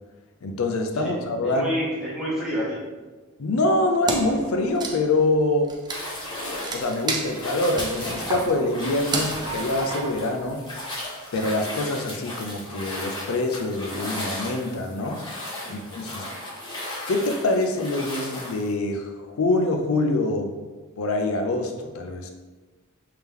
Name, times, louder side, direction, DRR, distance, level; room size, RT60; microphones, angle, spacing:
voice 1, 0.4-1.7 3.4-5.7 6.7-10.7 11.3-15.2 15.7-16.3 17.1-20.5 21.0-22.3, left 2 dB, 70° left, 5 dB, 0.5 m, -25 dB
voice 2, 1.4-2.8 9.1-9.3 15.6-15.8, equal, ahead, -9 dB, 0.8 m, -29 dB
Wood, 4.1-10.8, right 3 dB, 20° right, 0.4 m, -33 dB
sound 1, 5.9-18.7, left 1 dB, 20° left, 1.1 m, -35 dB
3.4 x 2.8 x 3.5 m, 1.3 s
head